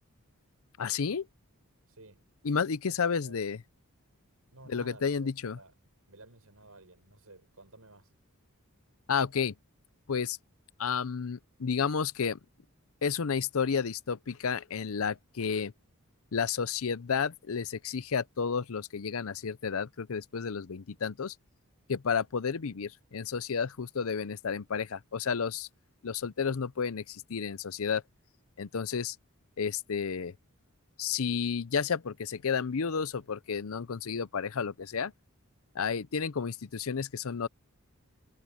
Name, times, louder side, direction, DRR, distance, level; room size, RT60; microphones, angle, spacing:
voice 1, 0.8-1.3 2.4-3.6 4.7-5.6 9.1-9.5 10.1-10.4 10.8-12.4 13.0-15.7 16.3-21.3 21.9-25.7 26.0-28.0 28.6-29.2 29.6-30.3 31.0-35.1 35.7-37.5, left 6 dB, 70° left, 0.6 m, -31 dB
voice 2, 1.9-2.3 3.2-3.5 4.5-8.1, right 2 dB, 75° right, 6.1 m, -54 dB
head